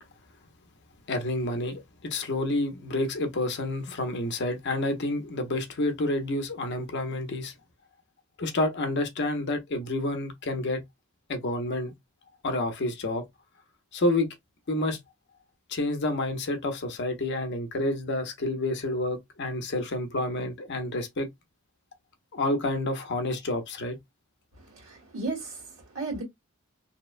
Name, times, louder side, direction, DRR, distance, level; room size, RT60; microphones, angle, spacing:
voice 1, 1.1-7.5 8.4-10.8 11.3-11.9 12.4-13.2 13.9-14.3 14.7-15.0 15.7-21.3 22.3-24.0, left 2 dB, 50° left, 0.6 m, -29 dB
voice 2, 24.6-26.2, right 3 dB, 85° right, 1.4 m, -35 dB
2.8 x 2.0 x 2.4 m
head